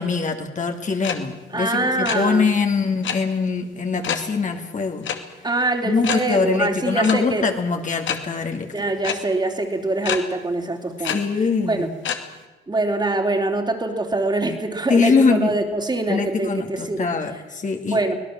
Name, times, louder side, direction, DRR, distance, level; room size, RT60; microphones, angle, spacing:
voice 1, 0.0-5.1 5.8-8.7 11.1-11.9 14.9-15.6 16.1-18.0, left 4 dB, 40° left, 4 dB, 2.7 m, -22 dB
sound 1, 1.0-1.2 1.4-2.2 3.0-3.2 4.0-4.3 5.0-5.2 5.5-5.6 6.0-6.2 7.0-7.2 8.0-8.2 9.0-9.1 10.0-10.2 11.0-11.2 12.0-12.2, left 8 dB, 70° left, 2.4 m, -25 dB
voice 2, 1.5-2.5 5.4-7.5 8.7-11.2 11.6-11.9 12.7-17.1 17.9-18.1, right 2 dB, 20° right, 3 dB, 3.3 m, -24 dB
24.5 x 18.0 x 7.6 m, 1.2 s
cardioid pair, 90°, 20 cm